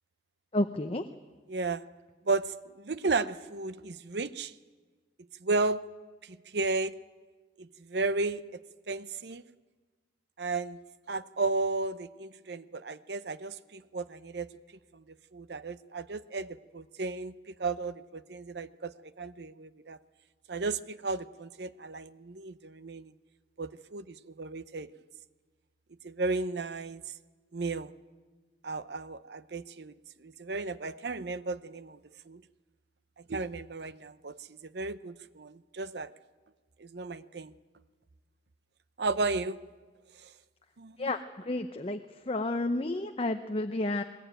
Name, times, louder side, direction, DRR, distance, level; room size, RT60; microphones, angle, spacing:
voice 1, 0.5-1.0 41.0-42.0 42.3-44.0, left 2 dB, 30° left, 7 dB, 0.7 m, -31 dB
voice 2, 1.5-1.9 2.2-4.5 5.4-5.8 6.2-7.0 7.6-8.4 8.9-9.4 10.4-10.8 11.1-14.5 14.9-15.0 15.3-20.0 20.5-23.1 23.6-24.9 26.0-27.0 27.5-27.9 28.6-29.9 30.2-32.0 32.3-32.4 33.2-36.1 36.8-37.5 39.0-39.6 40.2-40.3 40.8-41.1, right 3 dB, 65° right, 14 dB, 0.7 m, -34 dB
20.5 x 19.5 x 9.1 m, 1.4 s
head